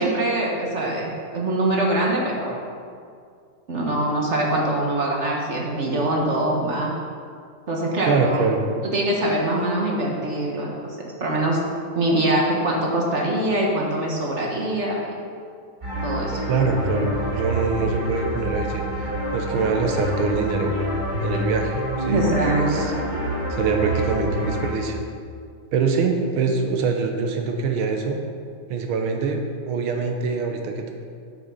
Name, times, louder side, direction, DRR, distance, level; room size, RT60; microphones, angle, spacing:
voice 1, 0.0-2.6 3.7-6.9 7.7-8.4 8.8-10.7 11.2-11.6 11.9-15.1 16.0-16.4 22.1-22.8, right 1 dB, 40° right, -1 dB, 1.2 m, -23 dB
voice 2, 8.1-8.6 16.5-20.8 21.2-22.9 23.5-25.0 25.7-28.2 28.7-30.9, right 4 dB, 75° right, 4 dB, 1.7 m, -24 dB
sound 1, 15.8-24.7, equal, 25° right, 1.8 m, -27 dB
8.3 x 6.7 x 5.5 m, 2.2 s
omnidirectional pair, 2.3 m